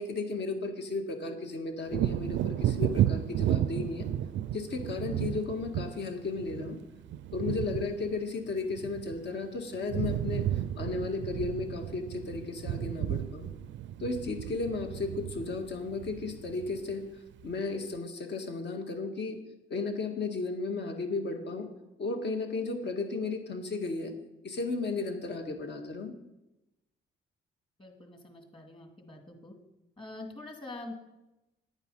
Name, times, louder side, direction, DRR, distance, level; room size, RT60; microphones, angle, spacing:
voice 1, 0.0-4.1 4.5-6.8 7.3-10.5 10.8-13.5 14.0-17.0 17.4-19.4 19.7-21.7 22.0-24.1 24.4-26.1, left 3 dB, 60° left, 4 dB, 1.9 m, -34 dB
Wind / Thunder, 1.9-9.5 9.7-17.0 17.4-17.5, right 12 dB, 70° right, 0.4 m, -33 dB
voice 2, 27.8-29.5 30.0-30.9, left 2 dB, 25° left, 3 dB, 2.3 m, -45 dB
9.3 x 9.2 x 5.5 m, 0.95 s
cardioid pair, 90°, 20 cm